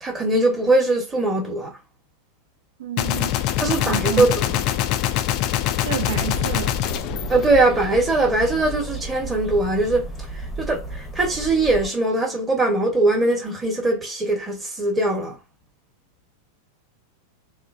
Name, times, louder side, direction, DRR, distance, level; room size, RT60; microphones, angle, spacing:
voice 1, 0.0-1.7 3.6-4.6 7.3-10.1 10.3-15.4, right 2 dB, 15° right, 1.0 m, -21 dB
voice 2, 2.8-3.3 3.6-4.3 5.8-6.8, right 13 dB, 60° right, 0.4 m, -29 dB
Gunshot gunfire, 3.0-8.2, left 12 dB, 40° left, 0.3 m, -24 dB
sound 1, 5.9-11.9, right 1 dB, 5° left, 0.8 m, -33 dB
3.0 x 2.1 x 2.4 m
figure-of-eight pair, 90°, 0 cm